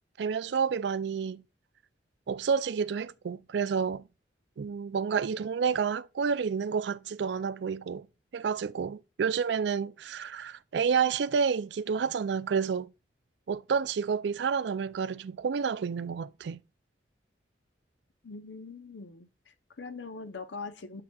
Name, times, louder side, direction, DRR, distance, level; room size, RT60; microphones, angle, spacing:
voice 1, 0.2-1.4 2.3-4.1 4.6-8.1 8.3-12.9 13.5-16.6, right 6 dB, 70° right, 0.4 m, -29 dB
voice 2, 18.2-21.0, left 4 dB, 80° left, 0.8 m, -42 dB
7.6 x 5.8 x 2.3 m
head